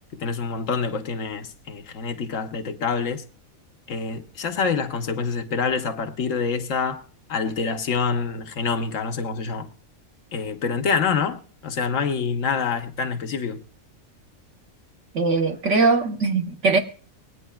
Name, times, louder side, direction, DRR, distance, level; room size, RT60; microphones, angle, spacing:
voice 1, 0.1-3.2 3.9-7.0 7.3-9.7 10.3-13.6, left 5 dB, 65° left, 1.2 m, -26 dB
voice 2, 15.1-16.8, right 3 dB, 60° right, 1.3 m, -20 dB
21.5 x 9.2 x 2.3 m
omnidirectional pair, 1.5 m